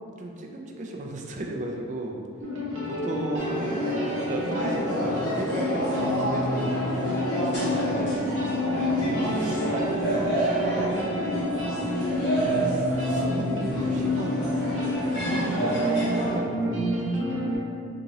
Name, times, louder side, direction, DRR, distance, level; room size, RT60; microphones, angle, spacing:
voice 1, 0.2-2.2 2.9-3.8 4.1-8.5 9.4-10.4 11.3-11.6 13.1-13.5 13.8-14.7 15.0-17.2, right 1 dB, 35° right, 1 dB, 0.3 m, -36 dB
sound 1, 2.4-17.6, left 2 dB, 70° right, 0.7 m, -29 dB
sound 2, 3.4-16.4, right 2 dB, 50° left, 1.1 m, -29 dB
sound 3, 7.5-15.3, right 2 dB, 80° left, 1.3 m, -38 dB
2.9 x 2.8 x 3.7 m, 2.5 s
head